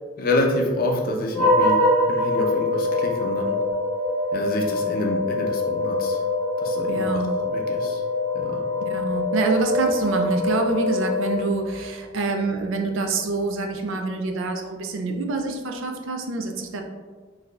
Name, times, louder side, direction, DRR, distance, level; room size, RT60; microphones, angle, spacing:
voice 1, 0.2-3.6 4.3-6.2 6.6-8.0 8.3-8.6, left 1 dB, 45° left, 1 dB, 0.5 m, -27 dB
sound 1, 1.3-11.9, left 2 dB, 35° right, 0.9 m, -24 dB
voice 2, 6.9-7.3 8.8-16.8, right 3 dB, 75° right, 4 dB, 0.4 m, -26 dB
3.8 x 2.7 x 2.3 m, 1.4 s
head